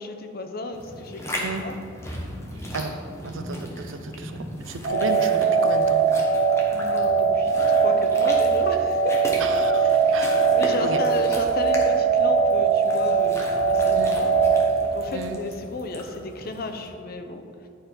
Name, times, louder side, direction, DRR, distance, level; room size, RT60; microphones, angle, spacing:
voice 1, 0.0-1.7 6.7-9.2 9.8-10.2 10.5-14.3 14.8-17.4, left 2 dB, 50° left, 6 dB, 0.7 m, -33 dB
sound 1, 0.7-16.9, equal, 15° left, 1.1 m, -37 dB
voice 2, 3.2-6.0 9.4-10.5 10.8-11.0 13.9-14.2 15.1-15.4, right 3 dB, 75° right, 8 dB, 0.6 m, -33 dB
sound 2, 4.8-14.8, right 5 dB, 40° right, 0.8 m, -21 dB
9.9 x 5.2 x 4.5 m, 2.5 s
head